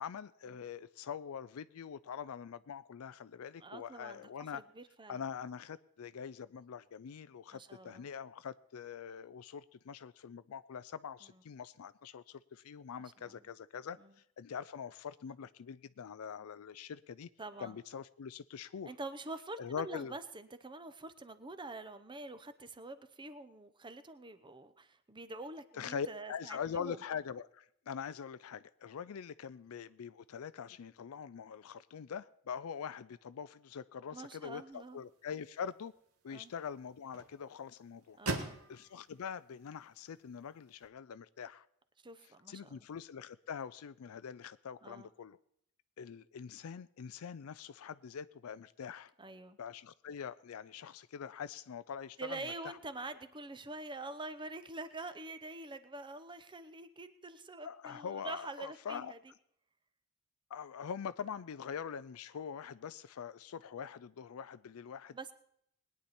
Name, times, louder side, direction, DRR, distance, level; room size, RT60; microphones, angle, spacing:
voice 1, 0.0-4.6 5.1-14.0 14.4-17.3 17.6-18.9 19.6-20.1 25.8-35.9 36.2-38.2 38.7-41.6 42.5-45.4 46.0-49.1 49.6-52.8 57.6-59.1 60.5-65.2, left 7 dB, 70° left, 0.4 m, -44 dB
voice 2, 3.6-4.2 4.5-5.2 7.5-8.1 13.2-13.4 14.0-14.1 17.4-17.8 18.8-27.0 34.1-35.0 36.3-36.5 38.2-38.6 42.0-42.9 44.8-45.1 49.2-49.6 52.2-59.2 65.1-65.3, right 2 dB, 20° right, 0.8 m, -46 dB
sound 1, 34.7-40.9, right 3 dB, 80° right, 1.7 m, -46 dB
20.5 x 9.8 x 4.3 m
head